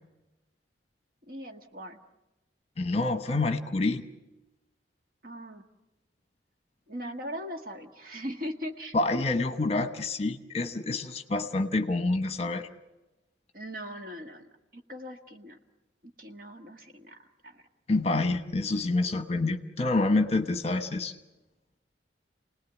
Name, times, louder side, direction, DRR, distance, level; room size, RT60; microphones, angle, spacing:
voice 1, 1.2-2.0 5.2-5.7 6.9-9.0 13.5-15.6 16.0-17.6, equal, 50° right, 4 dB, 1.7 m, -40 dB
voice 2, 2.8-4.0 8.9-12.7 17.9-21.1, left 2 dB, 35° left, 8 dB, 1.1 m, -27 dB
29.5 x 19.0 x 8.3 m, 1.0 s
head